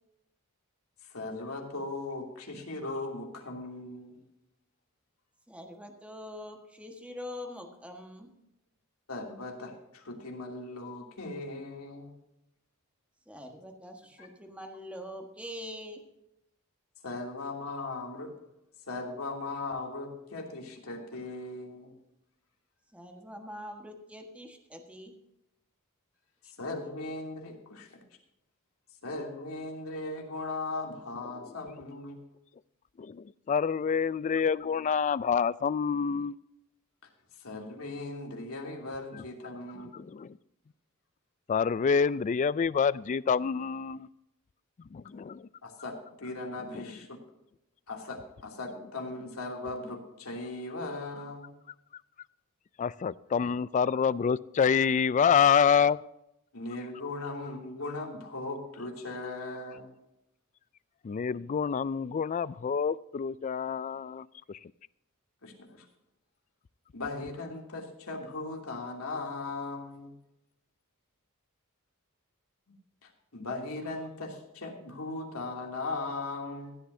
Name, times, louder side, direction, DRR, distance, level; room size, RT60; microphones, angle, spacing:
voice 1, 1.1-4.2 9.1-12.2 14.2-14.3 17.0-18.3 18.9-21.9 26.6-28.0 29.0-32.2 37.4-39.9 45.6-47.2 47.9-51.5 56.5-59.9 65.4-65.8 66.9-70.1 73.0-76.8, left 2 dB, 80° left, 2.8 m, -38 dB
voice 2, 5.5-8.3 13.3-16.0 22.9-25.1, left 1 dB, 5° right, 1.4 m, -44 dB
voice 3, 33.0-36.3 39.9-40.4 41.5-44.1 44.9-45.5 52.8-56.0 61.0-64.6, left 6 dB, 35° left, 0.3 m, -27 dB
16.0 x 11.5 x 2.7 m
head